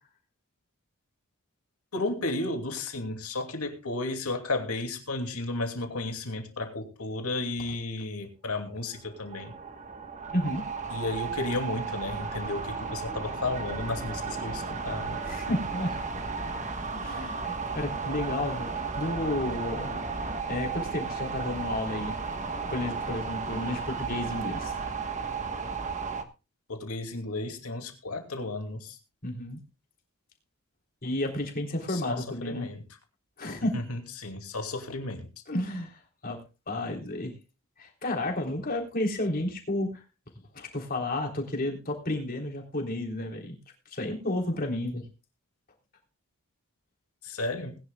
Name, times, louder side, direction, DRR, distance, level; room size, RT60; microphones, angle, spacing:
voice 1, 1.9-9.5 10.9-15.2 26.7-29.0 31.9-32.8 33.7-35.3 47.2-47.8, left 2 dB, 85° left, 2.7 m, -33 dB
sound 1, 8.9-26.2, right 4 dB, 35° right, 1.3 m, -34 dB
voice 2, 10.3-10.6 15.2-15.9 16.9-19.9 20.5-22.2 22.7-24.8 29.2-29.6 31.0-32.7 33.4-33.8 35.5-36.4 36.7-37.4 37.8-40.0 40.5-43.6 43.9-45.1, left 1 dB, 40° left, 3.7 m, -32 dB
21.0 x 11.0 x 2.3 m
head